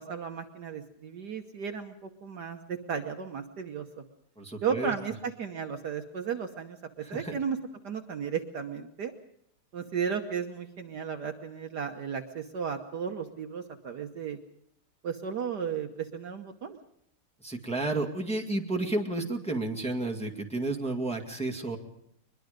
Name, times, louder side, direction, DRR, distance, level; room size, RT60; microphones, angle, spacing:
voice 1, 0.0-4.0 4.6-7.6 7.8-9.1 9.7-14.4 15.0-16.8, right 7 dB, 55° right, 5 dB, 1.5 m, -34 dB
voice 2, 4.4-4.9 7.0-7.3 17.4-21.8, right 2 dB, 5° left, 2 dB, 1.8 m, -31 dB
23.0 x 21.5 x 5.2 m, 0.75 s
omnidirectional pair, 2.3 m